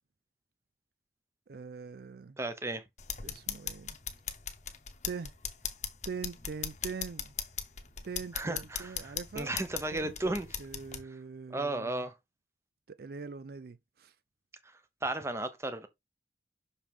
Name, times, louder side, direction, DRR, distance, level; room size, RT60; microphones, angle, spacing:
voice 1, 1.5-2.4 3.2-4.0 5.0-5.3 6.0-7.3 8.0-9.5 9.9-12.0 12.9-14.1, right 5 dB, 60° right, 0.4 m, -43 dB
voice 2, 2.4-2.8 8.3-10.5 11.5-12.1 15.0-15.9, right 2 dB, 15° right, 0.8 m, -34 dB
sound 1, 3.0-11.0, left 8 dB, 40° left, 1.0 m, -39 dB
6.3 x 5.2 x 3.5 m
head